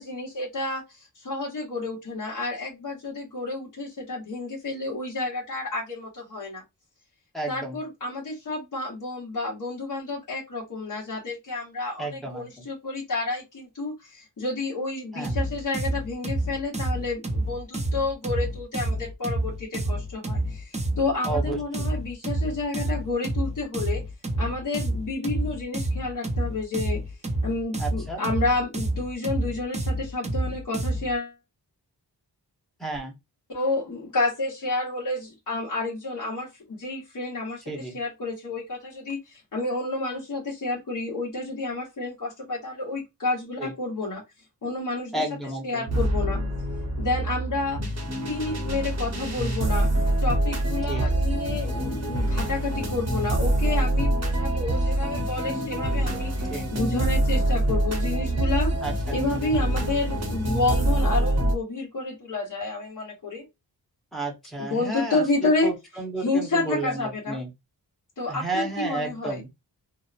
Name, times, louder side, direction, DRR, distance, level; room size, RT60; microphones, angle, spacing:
voice 1, 0.0-6.6 7.5-24.0 24.4-27.0 27.4-31.3 33.5-37.6 37.9-44.2 44.6-45.3 45.6-46.4 47.0-48.0 48.3-49.9 50.2-58.7 59.1-63.4 64.6-65.7 66.2-67.4 68.2-69.4, left 3 dB, 50° left, 1.0 m, -30 dB
voice 2, 7.3-7.8 12.0-12.7 15.1-15.4 21.2-21.9 27.8-28.2 32.8-33.2 37.7-38.0 43.6-43.7 45.1-45.9 50.9-51.1 56.5-56.7 58.8-59.4 64.1-67.5 68.3-69.5, right 3 dB, ahead, 0.9 m, -32 dB
sound 1, 15.2-31.1, right 1 dB, 15° right, 0.4 m, -29 dB
sound 2, 45.9-61.5, right 1 dB, 40° right, 0.8 m, -25 dB
2.8 x 2.1 x 2.4 m
wide cardioid pair, 110°, 41 cm